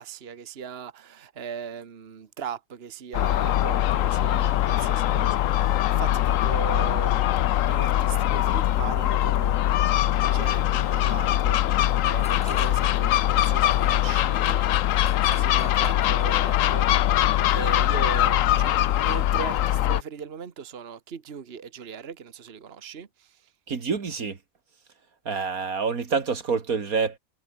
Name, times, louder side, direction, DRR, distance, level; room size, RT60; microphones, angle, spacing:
voice 1, 0.0-9.6 10.2-14.9 15.2-23.4, right 7 dB, 45° right, 1.5 m, -38 dB
Gull seagull, 3.1-20.0, left 13 dB, 70° left, 1.0 m, -22 dB
sound 1, 12.2-12.9 13.2-17.0, equal, 5° left, 3.2 m, -45 dB
sound 2, 14.4-15.1 18.1-18.9, right 2 dB, 65° right, 5.2 m, -48 dB
voice 2, 23.7-24.4 25.3-27.2, right 5 dB, 80° right, 2.6 m, -27 dB
omnidirectional pair, 1.5 m